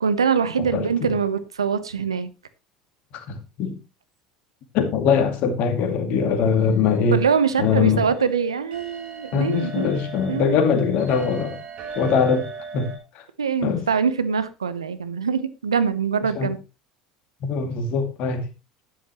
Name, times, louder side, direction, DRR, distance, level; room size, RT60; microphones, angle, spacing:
voice 1, 0.0-2.3 7.1-9.9 10.3-10.6 13.4-16.6, right 6 dB, 85° right, 0.9 m, -23 dB
voice 2, 0.7-1.1 3.1-3.8 4.7-7.2 7.6-8.1 9.3-11.6 11.9-13.2 13.6-13.9 16.3-16.5 17.4-18.5, left 6 dB, 55° left, 2.4 m, -22 dB
sound 1, 6.6-13.0, right 5 dB, 50° right, 4.3 m, -39 dB
12.5 x 10.5 x 3.0 m
figure-of-eight pair, 70°, 3 cm